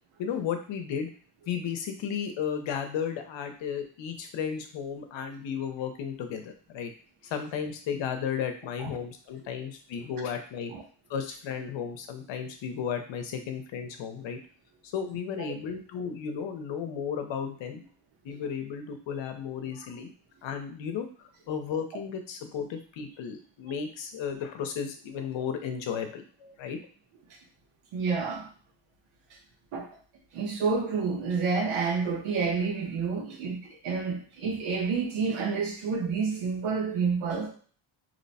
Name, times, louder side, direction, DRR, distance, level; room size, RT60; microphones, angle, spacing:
voice 1, 0.2-1.1 1.5-6.9 7.2-10.7 11.1-14.4 14.9-17.8 18.2-20.1 20.4-21.1 21.5-26.8, left 7 dB, 65° left, 5 dB, 0.8 m, -34 dB
voice 2, 27.9-28.5 29.7-30.0 30.3-37.5, right 5 dB, 85° right, 1 dB, 1.0 m, -29 dB
2.9 x 2.1 x 4.1 m, 0.42 s
cardioid pair, 125°, 48 cm